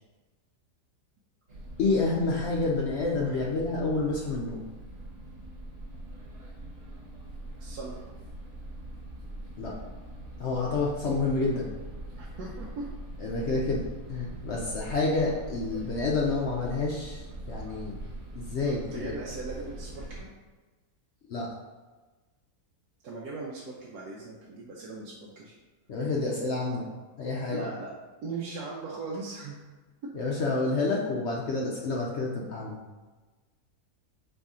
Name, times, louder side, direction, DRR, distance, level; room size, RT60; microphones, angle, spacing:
sound 1, 1.5-20.2, right 1 dB, 65° right, 1.6 m, -42 dB
voice 1, 1.8-4.6 9.6-9.7 10.4-11.7 13.2-18.0 18.3-19.1 21.3-21.5 25.9-26.9 27.2-27.6 30.1-32.8, left 3 dB, 65° left, -3 dB, 0.7 m, -29 dB
voice 2, 7.6-8.0 12.1-12.8 18.9-20.3 23.0-25.5 27.5-27.9 28.2-29.6, right 3 dB, 80° right, -4 dB, 1.2 m, -39 dB
4.1 x 3.2 x 3.6 m, 1.3 s
omnidirectional pair, 1.7 m